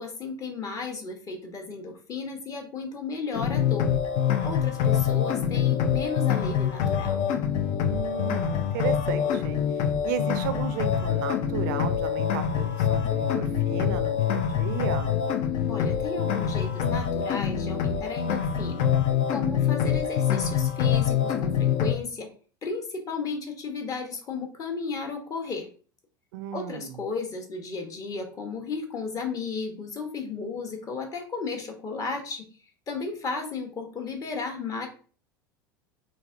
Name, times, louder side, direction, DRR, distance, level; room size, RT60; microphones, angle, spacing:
voice 1, 0.0-3.9 4.4-7.2 15.7-18.9 19.3-22.3 22.6-25.7 26.5-32.5 32.9-34.9, left 4 dB, 30° left, 3 dB, 0.9 m, -34 dB
sound 1, 3.3-21.9, left 8 dB, 50° left, 0.4 m, -25 dB
voice 2, 7.9-15.2 26.3-27.0, right 10 dB, 60° right, 11 dB, 0.4 m, -34 dB
3.2 x 2.6 x 2.4 m, 0.40 s
hypercardioid pair, 80°, 11 cm